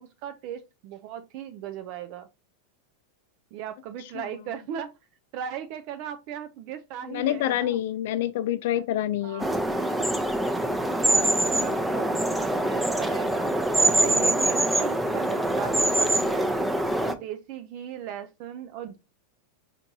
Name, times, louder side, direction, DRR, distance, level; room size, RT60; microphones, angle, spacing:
voice 1, 0.0-2.3 3.5-4.9 5.3-7.8 9.2-9.5 11.0-13.5 13.8-16.5 17.0-19.0, right 9 dB, 55° right, 0.4 m, -37 dB
voice 2, 7.1-9.4, left 12 dB, 65° left, 0.3 m, -27 dB
sound 1, 9.4-17.1, right 1 dB, 5° right, 0.6 m, -24 dB
4.4 x 4.1 x 2.7 m
hypercardioid pair, 100°, 0 cm